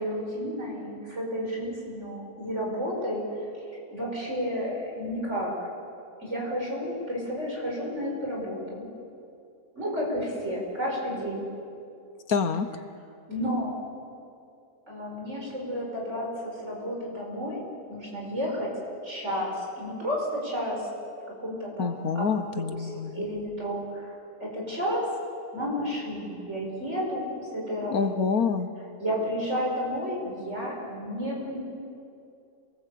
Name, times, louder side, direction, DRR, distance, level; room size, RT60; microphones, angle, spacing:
voice 1, 0.0-3.2 3.9-5.7 6.2-8.9 9.7-11.5 13.3-13.8 14.9-17.6 17.9-18.7 19.0-20.8 21.4-22.3 22.5-25.1 25.5-27.2 27.5-28.0 29.0-31.6, equal, 45° right, -2 dB, 6.0 m, -31 dB
voice 2, 12.3-12.7 21.8-23.2 27.9-28.7, left 5 dB, 65° left, 10 dB, 1.4 m, -27 dB
27.0 x 19.5 x 8.4 m, 2.6 s
omnidirectional pair, 1.7 m